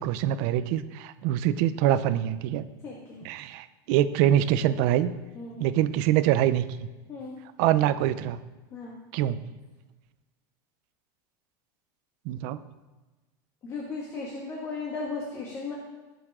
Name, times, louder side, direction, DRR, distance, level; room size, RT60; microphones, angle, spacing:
voice 1, 0.0-2.6 3.2-5.1 5.6-6.8 7.6-8.4 9.1-9.4 12.3-12.6, right 11 dB, 55° right, 13 dB, 0.6 m, -24 dB
voice 2, 2.8-3.2 5.3-5.6 7.1-7.4 8.7-8.9 13.6-15.7, left 4 dB, 30° left, -3 dB, 1.9 m, -36 dB
19.0 x 7.0 x 3.7 m, 1.2 s
supercardioid pair, 160°, 10 cm